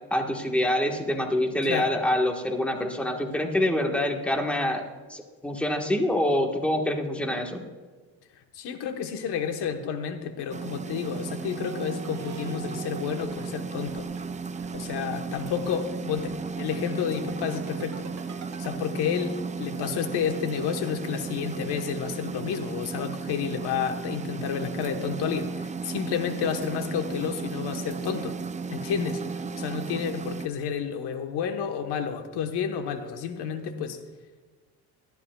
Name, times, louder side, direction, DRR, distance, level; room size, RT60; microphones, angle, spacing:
voice 1, 0.1-7.7, left 1 dB, 5° left, 2 dB, 1.3 m, -26 dB
voice 2, 8.5-14.1 14.7-18.1 18.6-28.4 28.7-34.0, left 7 dB, 85° left, 6 dB, 1.2 m, -30 dB
sound 1, 10.5-30.5, right 5 dB, 20° right, 0.4 m, -35 dB
sound 2, 11.6-18.7, right 7 dB, 45° right, 1.4 m, -44 dB
18.5 x 12.5 x 2.3 m, 1.4 s
cardioid pair, 120°, 39 cm